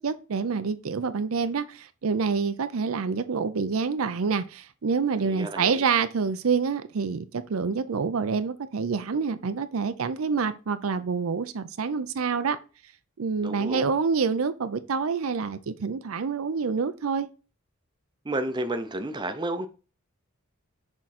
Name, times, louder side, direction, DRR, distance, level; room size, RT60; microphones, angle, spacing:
voice 1, 0.0-12.6 13.2-17.3, right 5 dB, 70° right, 0.5 m, -27 dB
voice 2, 5.2-5.8 13.4-13.9 18.3-19.7, right 1 dB, 20° right, 0.6 m, -31 dB
6.2 x 3.7 x 4.2 m
head